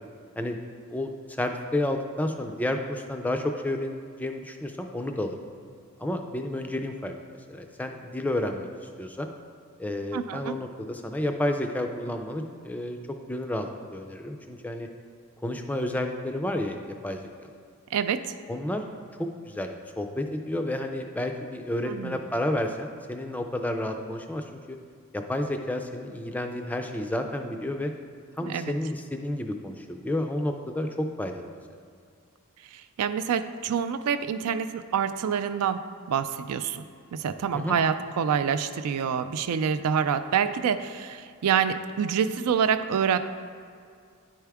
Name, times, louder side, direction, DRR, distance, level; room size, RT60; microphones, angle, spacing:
voice 1, 0.9-5.4 6.0-7.1 7.5-9.3 9.8-13.0 13.3-14.9 15.4-17.2 18.5-18.8 19.2-19.7 20.0-24.8 25.1-27.9 28.4-31.6 37.5-37.7, left 1 dB, 5° left, 4 dB, 0.3 m, -31 dB
voice 2, 10.1-10.5 17.9-18.3 21.9-22.2 28.4-28.7 32.7-35.8 36.1-36.8 37.1-43.2, right 7 dB, 80° right, 11 dB, 0.4 m, -27 dB
9.7 x 4.6 x 3.5 m, 2.2 s
head